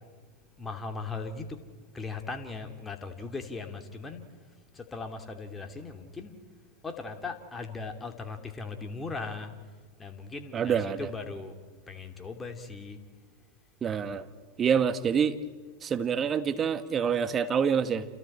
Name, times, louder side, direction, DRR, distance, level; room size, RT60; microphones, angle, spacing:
voice 1, 0.6-1.6 1.9-4.3 4.7-6.4 6.8-9.5 10.0-10.7 11.0-11.5 11.9-13.0, left 4 dB, 15° left, 5 dB, 2.7 m, -38 dB
voice 2, 10.5-11.1 13.8-14.2 14.6-15.4 15.8-18.1, right 7 dB, 25° right, 11 dB, 1.4 m, -26 dB
29.0 x 29.0 x 4.4 m, 1.5 s
figure-of-eight pair, 95°, 0 cm